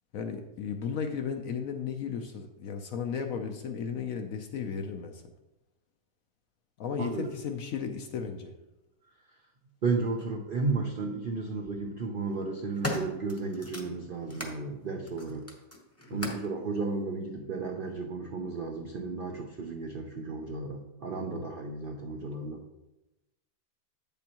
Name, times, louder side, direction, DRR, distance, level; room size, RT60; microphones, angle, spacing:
voice 1, 0.1-5.2 6.8-8.5 16.1-16.3 21.2-21.4, left 6 dB, 65° left, 5 dB, 0.9 m, -35 dB
voice 2, 7.0-7.3 9.8-15.5 16.1-22.6, right 3 dB, 80° right, 2 dB, 0.4 m, -33 dB
sound 1, 10.2-10.3 11.4-11.8 12.3-14.6 15.0-16.5 17.4-17.5, left 1 dB, 15° left, 0.6 m, -39 dB
8.5 x 6.9 x 2.9 m, 0.96 s
omnidirectional pair, 1.8 m